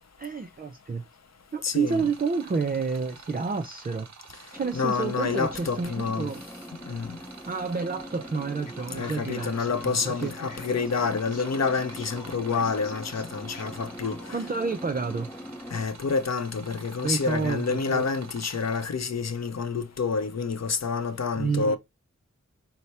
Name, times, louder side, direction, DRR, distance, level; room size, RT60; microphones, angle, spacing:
voice 1, 0.2-1.0 1.5-4.1 4.5-6.4 7.5-9.6 9.8-10.3 14.3-15.3 17.0-18.1 21.4-21.8, right 4 dB, 30° right, 0.4 m, -29 dB
voice 2, 1.6-2.1 4.7-6.3 6.9-7.2 8.9-14.2 15.7-21.8, left 5 dB, 55° left, 0.7 m, -28 dB
sound 1, 1.9-18.9, right 5 dB, 60° right, 0.8 m, -48 dB
sound 2, 4.5-15.9, equal, 5° left, 0.9 m, -43 dB
Male speech man speaking, 8.7-14.5, left 4 dB, 85° left, 1.0 m, -47 dB
4.6 x 2.1 x 4.0 m
wide cardioid pair, 70°, 31 cm